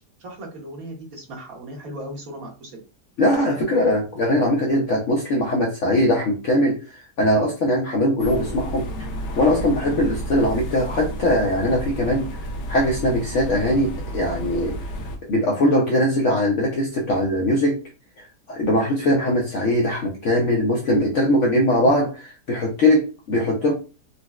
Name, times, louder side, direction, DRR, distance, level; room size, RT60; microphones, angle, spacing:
voice 1, 0.0-2.8, right 1 dB, 60° right, 0 dB, 1.2 m, -37 dB
voice 2, 3.2-8.9 9.4-12.3 12.7-14.8 15.3-17.8 18.5-23.7, left 1 dB, 65° left, -1 dB, 0.7 m, -21 dB
sound 1, 8.2-15.2, right 1 dB, 85° left, 1.2 m, -31 dB
4.0 x 2.1 x 2.3 m, 0.34 s
omnidirectional pair, 1.8 m